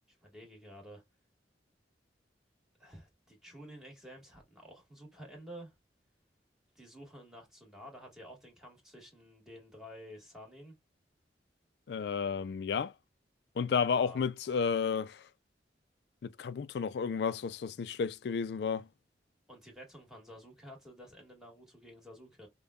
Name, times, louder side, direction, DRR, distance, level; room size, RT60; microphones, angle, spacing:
voice 1, 0.1-1.0 2.8-5.7 6.7-10.7 13.9-14.3 19.5-22.5, equal, 5° right, 1.4 m, -51 dB
voice 2, 11.9-12.9 13.6-15.2 16.2-18.9, left 6 dB, 65° left, 0.3 m, -32 dB
5.2 x 2.2 x 2.2 m
head